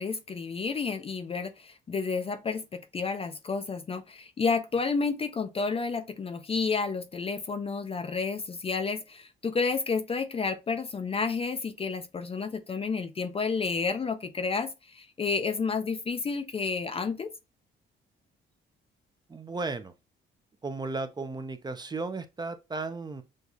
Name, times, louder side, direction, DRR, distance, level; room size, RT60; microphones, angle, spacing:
voice 1, 0.0-17.3, left 4 dB, 30° left, 0.4 m, -31 dB
voice 2, 19.3-19.9 20.6-23.2, right 3 dB, 20° right, 0.5 m, -35 dB
6.3 x 2.3 x 2.6 m
cardioid pair, 90°, 20 cm